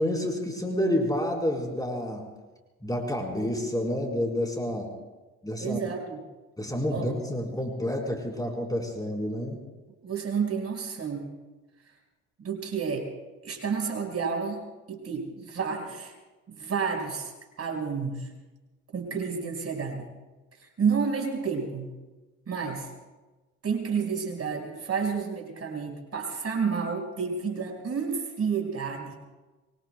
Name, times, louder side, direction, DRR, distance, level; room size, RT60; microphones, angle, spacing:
voice 1, 0.0-2.2 2.8-4.9 5.4-5.8 6.6-9.6, left 1 dB, 10° left, 0 dB, 4.4 m, -29 dB
voice 2, 5.6-6.2 6.9-7.1 10.0-11.3 12.4-13.1 13.4-16.1 16.5-17.3 17.6-18.3 18.9-20.1 20.6-21.9 22.5-22.9 23.6-29.2, right 5 dB, 40° right, 2 dB, 5.4 m, -30 dB
25.0 x 24.0 x 2.3 m, 1.2 s
hypercardioid pair, 65°, 36 cm